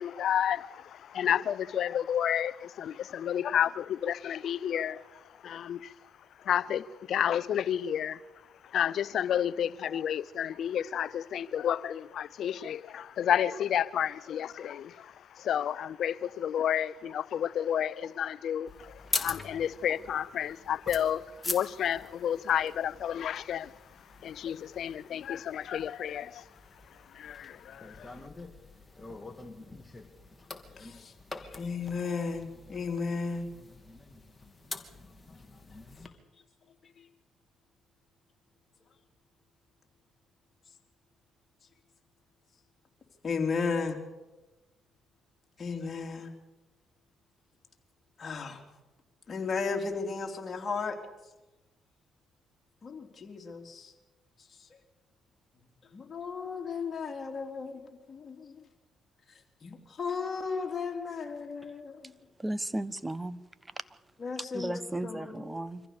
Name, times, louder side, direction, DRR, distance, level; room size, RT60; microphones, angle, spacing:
voice 1, 0.0-5.0 5.4-5.9 6.4-8.2 8.7-23.7 24.2-26.4 27.1-28.1, left 9 dB, 65° left, 0.6 m, -31 dB
sound 1, 18.7-36.1, left 3 dB, 25° left, 2.8 m, -43 dB
voice 2, 30.8-31.1 31.4-33.5 43.2-44.0 45.6-46.3 48.2-48.6 49.3-51.0 52.8-53.9 55.9-58.7 59.6-62.1 64.2-65.5, left 4 dB, 45° left, 3.8 m, -35 dB
voice 3, 62.4-63.4 64.5-65.8, right 1 dB, 15° right, 1.3 m, -34 dB
25.0 x 15.0 x 7.1 m
supercardioid pair, 55°, 0 cm